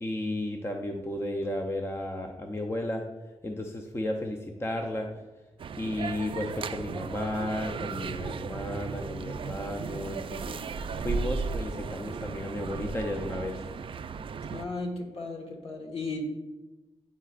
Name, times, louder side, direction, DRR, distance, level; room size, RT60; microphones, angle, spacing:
voice 1, 0.0-3.0 3.4-5.2 5.8-13.6, left 1 dB, 20° left, 3 dB, 0.6 m, -33 dB
sound 1, 5.6-14.6, right 5 dB, 50° right, 0.4 m, -35 dB
voice 2, 14.5-16.2, left 3 dB, 60° left, -1 dB, 1.5 m, -35 dB
10.5 x 4.0 x 2.5 m, 1.1 s
cardioid pair, 60°, 11 cm